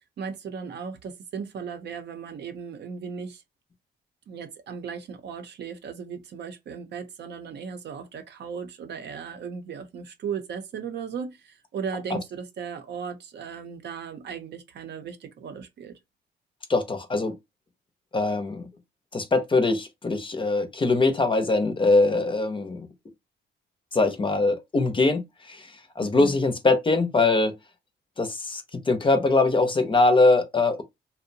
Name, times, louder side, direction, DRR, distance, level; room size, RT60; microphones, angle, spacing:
voice 1, 0.2-3.4 4.3-16.0 26.0-26.3, right 6 dB, 60° right, 0.6 m, -36 dB
voice 2, 16.7-17.3 18.1-18.7 19.1-22.9 23.9-27.5 28.2-30.8, left 3 dB, 25° left, 0.6 m, -22 dB
2.7 x 2.1 x 2.6 m
cardioid pair, 90°, 20 cm